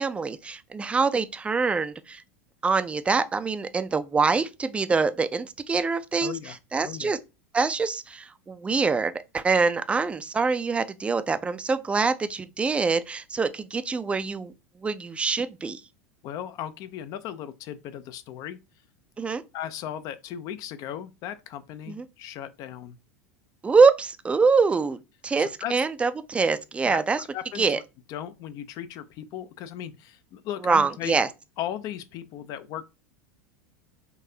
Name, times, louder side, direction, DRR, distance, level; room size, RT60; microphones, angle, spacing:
voice 1, 0.0-2.2 2.6-7.2 7.5-14.5 14.8-15.8 19.2-19.4 21.9-22.0 23.6-27.2 27.5-27.8 30.6-31.3, right 4 dB, 15° right, 0.4 m, -24 dB
voice 2, 6.2-6.6 6.8-7.1 16.2-18.6 19.5-23.0 25.4-25.9 26.8-27.0 27.3-27.8 28.1-31.2 31.6-32.8, left 11 dB, 50° left, 0.4 m, -36 dB
3.8 x 2.6 x 2.7 m
hypercardioid pair, 85°, 8 cm